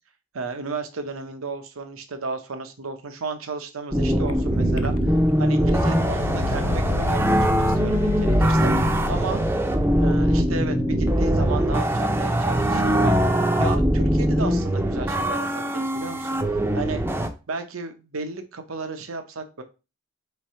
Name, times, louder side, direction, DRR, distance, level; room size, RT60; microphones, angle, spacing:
voice 1, 0.3-5.1 5.4-8.7 9.1-9.4 10.0-13.1 13.6-17.0 17.5-19.6, right 4 dB, 85° right, 7 dB, 0.8 m, -33 dB
sound 1, 3.9-17.3, equal, 10° right, 0.5 m, -22 dB
sound 2, 4.3-4.4 4.8-5.3 5.6-9.6, left 3 dB, 80° left, 0.4 m, -30 dB
3.5 x 3.3 x 4.2 m, 0.30 s
head